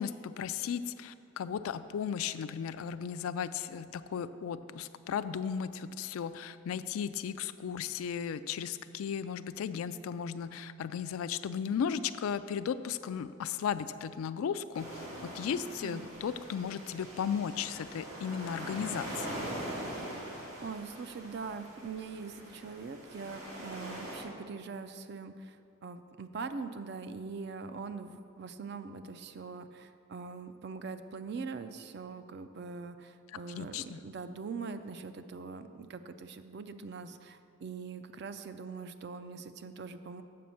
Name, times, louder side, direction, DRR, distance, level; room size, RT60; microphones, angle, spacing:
voice 1, 0.0-19.5 33.5-34.0, left 7 dB, 80° left, 13 dB, 0.3 m, -35 dB
sound 1, 14.7-24.2, right 1 dB, 85° right, 2.1 m, -42 dB
voice 2, 20.6-25.6 25.8-40.2, right 4 dB, 50° right, 10 dB, 0.4 m, -42 dB
7.6 x 5.1 x 7.0 m, 2.4 s
head